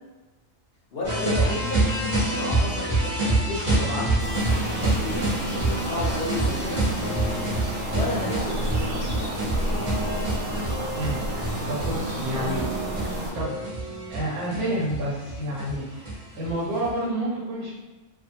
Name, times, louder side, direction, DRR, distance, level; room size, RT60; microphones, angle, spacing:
voice 1, 0.9-1.8 2.1-4.3 4.8-6.8 7.9-9.3, left 1 dB, 60° left, -4 dB, 0.6 m, -32 dB
sound 1, 1.0-16.9, right 1 dB, 35° right, 1.0 m, -27 dB
sound 2, 4.2-13.3, right 1 dB, 70° right, 0.5 m, -31 dB
sound 3, 6.9-14.1, equal, 90° left, 1.1 m, -37 dB
voice 2, 11.0-12.6 13.0-13.7 14.1-17.7, right 1 dB, 85° right, -5 dB, 1.2 m, -30 dB
2.6 x 2.4 x 2.7 m, 1.2 s
omnidirectional pair, 1.5 m